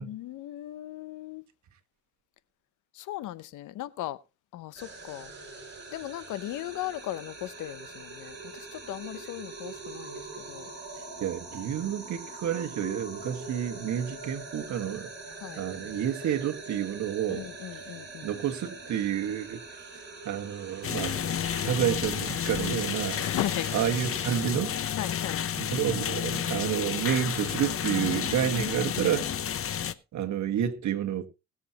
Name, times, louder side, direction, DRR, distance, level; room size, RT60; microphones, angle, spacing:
voice 1, 0.0-1.4 2.9-4.2 4.5-5.3 5.9-10.7 15.4-15.6 17.3-18.3 23.2-23.7 24.9-25.5 28.5-29.1 29.6-29.8, left 14 dB, 85° left, 0.8 m, -37 dB
sound 1, 4.8-24.4, right 3 dB, 35° right, 5.9 m, -43 dB
voice 2, 11.2-15.1 15.6-17.4 18.2-19.6 20.3-23.2 23.7-24.8 25.6-29.3 30.1-31.3, right 10 dB, 70° right, 1.7 m, -30 dB
sound 2, 20.8-29.9, left 9 dB, 45° left, 0.8 m, -31 dB
20.5 x 7.4 x 2.9 m
cardioid pair, 90°, 30 cm